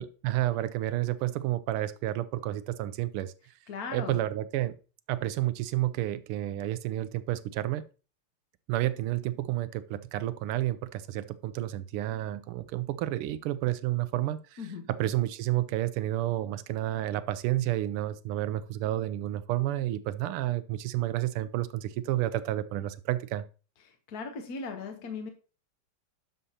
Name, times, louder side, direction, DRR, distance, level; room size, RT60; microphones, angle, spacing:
voice 1, 0.0-3.3 3.9-4.7 5.1-7.8 8.7-14.6 14.9-23.4, right 14 dB, 90° right, 14 dB, 1.5 m, -30 dB
voice 2, 3.7-4.2 14.6-14.9 23.8-25.3, left 5 dB, 55° left, 5 dB, 1.3 m, -38 dB
11.0 x 6.9 x 2.8 m, 0.35 s
omnidirectional pair, 2.4 m